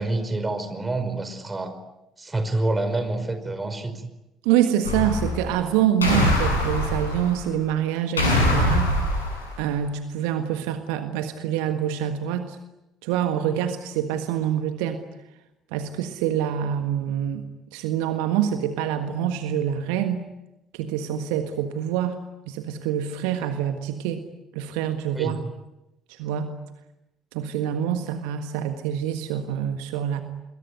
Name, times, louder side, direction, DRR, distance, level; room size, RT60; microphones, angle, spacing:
voice 1, 0.0-1.7 2.2-4.0 25.1-25.4, right 2 dB, 20° right, 9 dB, 5.3 m, -27 dB
voice 2, 4.4-8.9 9.6-12.6 13.0-15.0 15.7-17.4 17.7-20.2 20.7-22.2 22.4-24.2 24.5-25.4 26.1-26.5 27.3-30.2, right 10 dB, 65° right, 8 dB, 1.6 m, -26 dB
sound 1, 4.8-5.6 6.0-7.4 8.2-9.6, left 1 dB, 85° left, 7.2 m, -23 dB
27.5 x 22.0 x 9.6 m, 0.92 s
figure-of-eight pair, 50°, 0 cm